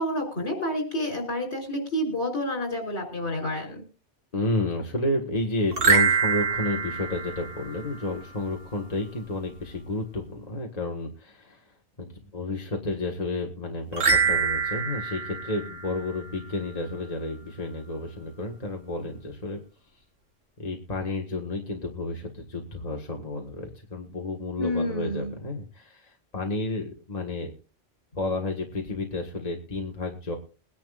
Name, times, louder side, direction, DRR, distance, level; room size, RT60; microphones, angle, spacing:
voice 1, 0.0-3.8 24.6-25.3, equal, 60° left, 5 dB, 4.3 m, -29 dB
voice 2, 4.3-19.6 20.6-27.5 28.1-30.4, left 2 dB, 30° left, 1 dB, 1.7 m, -31 dB
sound 1, 5.7-8.2 13.9-16.6, right 5 dB, 85° right, 2.0 m, -25 dB
22.0 x 10.5 x 2.5 m, 0.34 s
omnidirectional pair, 1.3 m